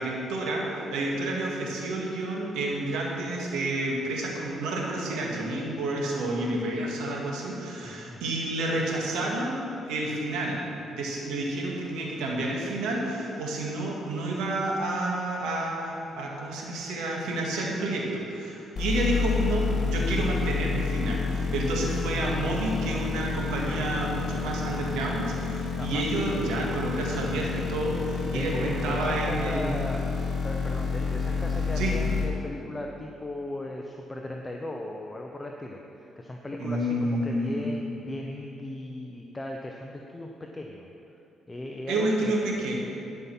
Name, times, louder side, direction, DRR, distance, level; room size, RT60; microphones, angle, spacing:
voice 1, 0.0-9.6 9.8-10.6 10.9-29.9 31.8-31.9 36.6-37.7 41.9-42.7, right 1 dB, 90° right, -2 dB, 1.8 m, -29 dB
voice 2, 7.8-8.3 25.8-26.1 28.3-40.9 41.5-42.6, left 1 dB, 20° left, 2 dB, 0.7 m, -37 dB
sound 1, 18.8-32.3, left 5 dB, 50° left, 2.2 m, -29 dB
12.0 x 5.6 x 5.9 m, 2.8 s
cardioid pair, 90°, 0 cm